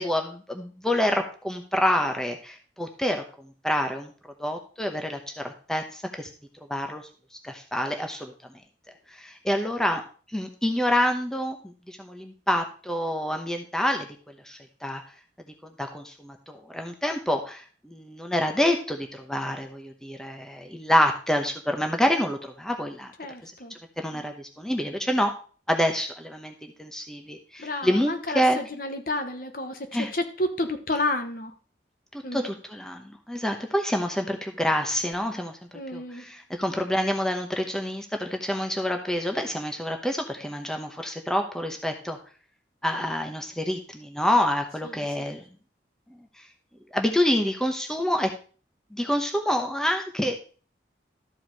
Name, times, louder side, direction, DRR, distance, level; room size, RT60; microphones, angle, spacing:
voice 1, 0.0-4.1 4.4-5.2 5.4-6.3 6.7-7.0 7.4-8.3 9.1-10.0 10.3-14.1 14.4-15.0 15.6-23.1 23.4-23.5 24.0-25.3 25.7-28.6 29.9-30.1 32.1-35.6 35.9-42.2 42.8-45.4 46.9-48.3 48.9-50.4, equal, 5° left, 4 dB, 0.9 m, -27 dB
voice 2, 23.2-23.7 24.1-24.2 27.6-31.5 32.2-32.5 35.7-36.2 44.8-45.4, left 1 dB, 50° left, 7 dB, 1.1 m, -31 dB
13.0 x 4.8 x 4.7 m, 0.40 s
head